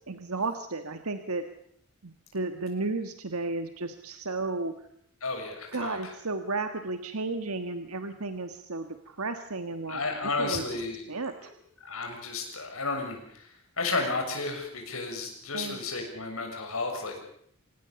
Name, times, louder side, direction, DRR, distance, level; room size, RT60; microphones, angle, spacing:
voice 1, 0.1-1.4 2.0-4.7 5.7-10.0 10.4-10.8 11.1-11.5 15.5-15.8, right 3 dB, 85° right, 8 dB, 1.6 m, -33 dB
voice 2, 5.2-6.0 9.9-11.0 11.8-13.5 13.8-17.2, left 3 dB, 75° left, 3 dB, 6.8 m, -32 dB
26.0 x 19.0 x 7.0 m, 0.65 s
head